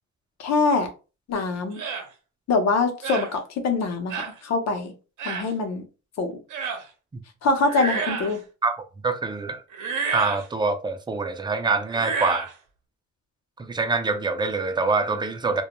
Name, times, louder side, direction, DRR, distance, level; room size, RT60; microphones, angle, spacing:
voice 1, 0.4-0.9 1.3-1.8 2.5-4.9 5.2-5.9 6.2-6.4 7.4-8.4, left 3 dB, 60° left, 0.7 m, -24 dB
sound 1, 1.8-2.1 3.0-3.3 4.1-4.3 5.2-5.5 6.5-6.8 7.6-8.4 9.7-10.4 11.9-12.5, right 5 dB, 80° right, 0.7 m, -29 dB
voice 2, 9.0-9.6 10.1-12.5 13.6-15.6, right 3 dB, 15° right, 0.4 m, -25 dB
2.2 x 2.1 x 2.9 m
cardioid pair, 90°, 30 cm